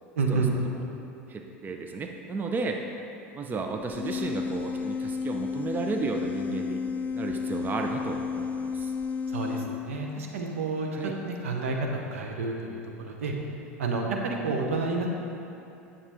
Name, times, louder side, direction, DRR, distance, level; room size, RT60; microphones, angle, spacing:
voice 1, 0.2-0.5 9.3-12.8 13.0-13.3 13.8-15.1, right 3 dB, 70° right, 1 dB, 1.0 m, -29 dB
voice 2, 1.3-2.8 3.3-6.8 7.1-8.9 10.9-11.1, right 4 dB, 25° right, 3 dB, 0.6 m, -33 dB
sound 1, 3.8-9.7, left 5 dB, 20° left, 0.5 m, -32 dB
9.6 x 7.0 x 3.6 m, 2.7 s
figure-of-eight pair, 80°, 8 cm